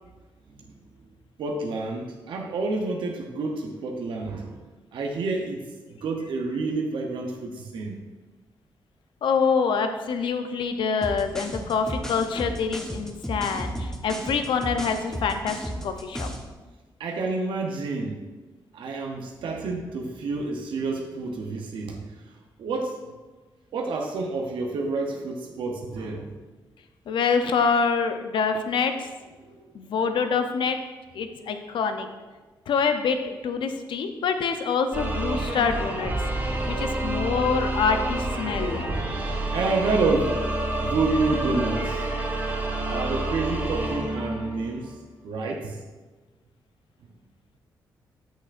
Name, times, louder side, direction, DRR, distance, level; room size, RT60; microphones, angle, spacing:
voice 1, 1.4-4.6 4.9-8.0 17.0-18.1 18.7-22.3 22.6-23.0 23.7-26.4 29.4-29.8 39.5-40.4 40.8-42.1 42.8-45.0 45.2-45.8, right 3 dB, 80° right, 2 dB, 0.7 m, -29 dB
voice 2, 9.2-16.3 27.1-29.1 29.7-30.8 31.1-32.1 32.7-36.1 36.7-38.9, left 5 dB, 80° left, 7 dB, 0.6 m, -26 dB
sound 1, 11.0-16.5, equal, 5° left, 1.0 m, -33 dB
sound 2, 34.9-44.9, right 2 dB, 25° right, 2.1 m, -28 dB
8.1 x 6.3 x 2.5 m, 1.3 s
cardioid pair, 65°, 8 cm